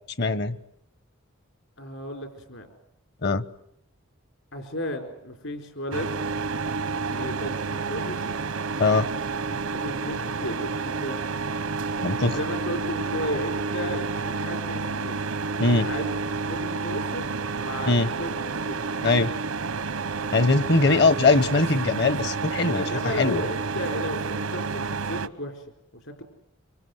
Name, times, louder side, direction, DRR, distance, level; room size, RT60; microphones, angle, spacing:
voice 1, 0.2-0.6 3.2-3.4 8.8-9.1 12.0-12.4 15.6-15.9 17.9-18.1 19.0-19.3 20.3-22.8 23.2-23.4, left 3 dB, 50° left, 15 dB, 1.0 m, -21 dB
voice 2, 1.8-2.7 4.5-6.1 7.1-8.3 9.7-11.3 12.3-15.2 15.8-16.2 16.5-17.3 17.6-18.8 20.8-21.1 22.7-25.6, equal, 70° left, 5 dB, 4.3 m, -34 dB
sound 1, 5.9-25.3, right 4 dB, 85° right, 0.9 m, -30 dB
25.5 x 25.0 x 7.9 m, 0.76 s
head